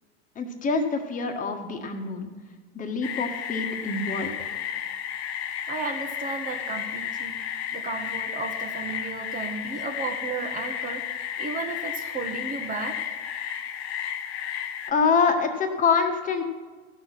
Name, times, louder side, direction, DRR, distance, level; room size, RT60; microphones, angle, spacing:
voice 1, 0.3-2.3 2.7-4.5 14.9-16.4, left 5 dB, 25° left, 5 dB, 1.6 m, -25 dB
sound 1, 3.0-14.9, left 9 dB, 70° left, 1.1 m, -33 dB
voice 2, 5.7-7.4 7.7-13.1, right 4 dB, 25° right, 3 dB, 1.2 m, -34 dB
16.0 x 6.4 x 5.9 m, 1.4 s
hypercardioid pair, 100°, 32 cm